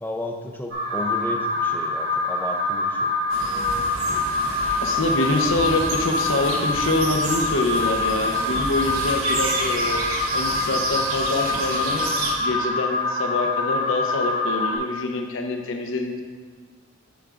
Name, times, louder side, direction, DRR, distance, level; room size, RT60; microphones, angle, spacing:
voice 1, 0.0-3.1, left 1 dB, 10° left, 2 dB, 0.5 m, -33 dB
Alarm, 0.7-14.8, left 2 dB, 85° right, 1.5 m, -25 dB
sound 1, 3.3-12.3, right 3 dB, 65° right, 1.0 m, -31 dB
voice 2, 4.8-10.0 10.3-12.1 12.4-16.2, left 2 dB, 60° left, 3 dB, 0.7 m, -25 dB
10.0 x 5.8 x 2.5 m, 1.5 s
head